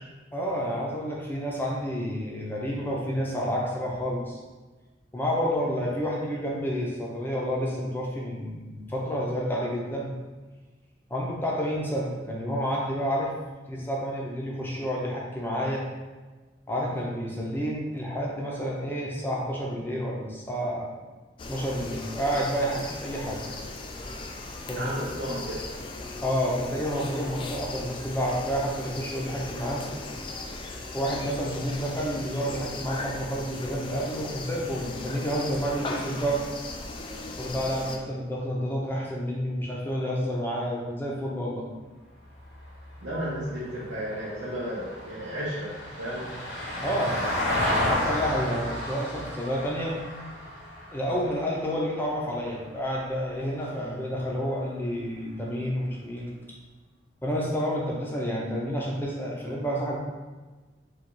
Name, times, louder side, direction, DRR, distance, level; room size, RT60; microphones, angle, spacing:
voice 1, 0.3-4.4 5.1-10.1 11.1-13.3 13.7-15.9 16.7-20.9 21.5-23.4 24.7-25.1 26.2-29.8 30.9-36.4 37.4-41.7 46.8-47.2 47.8-50.0 50.9-56.3 57.2-60.0, equal, 10° left, -3 dB, 0.7 m, -29 dB
sound 1, 21.4-38.0, left 2 dB, 25° left, 0.3 m, -38 dB
voice 2, 24.7-25.6 43.0-46.3, equal, 85° right, -8 dB, 0.8 m, -33 dB
Vehicle, 42.2-52.7 55.0-55.1, left 1 dB, 75° left, 1.2 m, -32 dB
3.8 x 2.5 x 4.6 m, 1.3 s
head